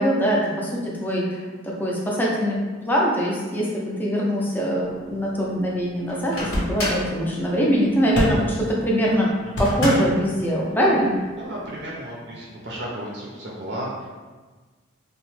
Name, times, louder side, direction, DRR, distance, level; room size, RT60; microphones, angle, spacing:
voice 1, 0.0-2.6 2.8-9.3 9.6-11.1, equal, 10° left, -4 dB, 0.4 m, -23 dB
sound 1, 4.8-11.9, equal, 60° left, 0.6 m, -32 dB
Microwave oven, 6.1-7.1 9.6-10.3, left 1 dB, 85° left, 1.0 m, -28 dB
voice 2, 9.4-9.8 11.3-14.1, right 1 dB, 55° right, -5 dB, 0.5 m, -34 dB
2.9 x 2.1 x 3.0 m, 1.3 s
head